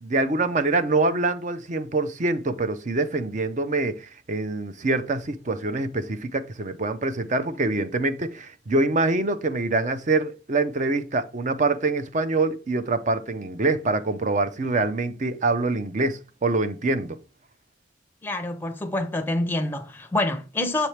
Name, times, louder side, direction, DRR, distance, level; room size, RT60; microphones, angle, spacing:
voice 1, 0.0-17.2, right 3 dB, 35° right, 0.5 m, -25 dB
voice 2, 18.2-20.9, left 2 dB, 10° left, 0.6 m, -26 dB
7.1 x 4.4 x 3.2 m
head